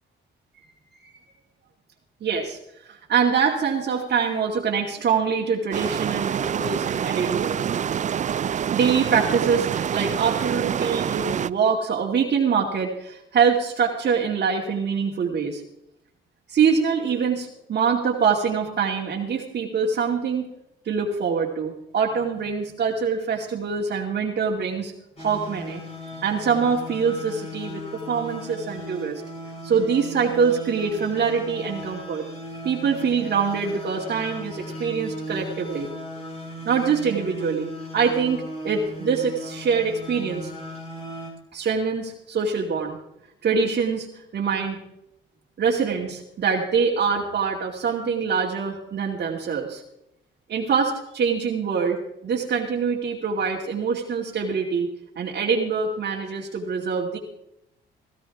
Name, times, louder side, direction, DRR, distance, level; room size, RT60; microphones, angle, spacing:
voice 1, 2.2-7.6 8.7-15.6 16.5-20.5 20.8-24.9 25.2-25.8 26.2-29.2 29.6-32.3 32.6-35.9 36.6-40.5 41.5-43.0 43.4-44.8 45.6-49.8 50.5-52.0 52.2-54.9 55.2-57.2, right 6 dB, 55° right, -3 dB, 2.5 m, -24 dB
sound 1, 5.7-11.5, right 8 dB, 40° right, 0.4 m, -26 dB
sound 2, 25.2-41.3, equal, 30° left, 7.1 m, -37 dB
18.5 x 15.5 x 3.6 m, 0.84 s
cardioid pair, 90°, 20 cm